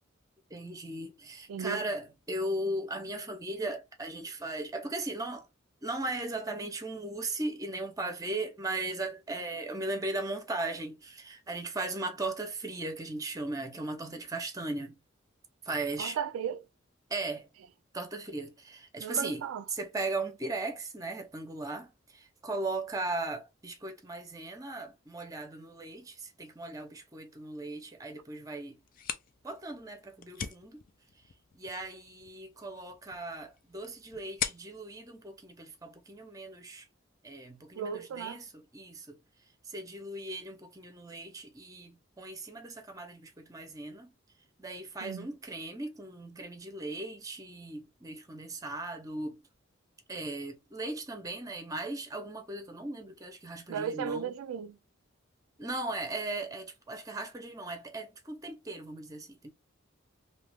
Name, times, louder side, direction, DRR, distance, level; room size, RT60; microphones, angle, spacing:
voice 1, 0.5-5.5 5.8-15.0 15.6-16.2 17.1-17.5 17.9-19.4 19.7-28.8 29.4-30.8 31.5-36.9 37.2-39.2 39.7-44.1 44.6-49.4 50.1-54.3 55.6-59.5, right 2 dB, 15° right, 0.6 m, -37 dB
voice 2, 1.5-1.8 16.0-16.7 19.0-19.6 37.8-38.4 45.0-45.3 53.7-54.8, right 7 dB, 90° right, 0.3 m, -35 dB
sound 1, 28.8-36.3, left 8 dB, 45° left, 0.4 m, -43 dB
2.8 x 2.4 x 3.3 m
head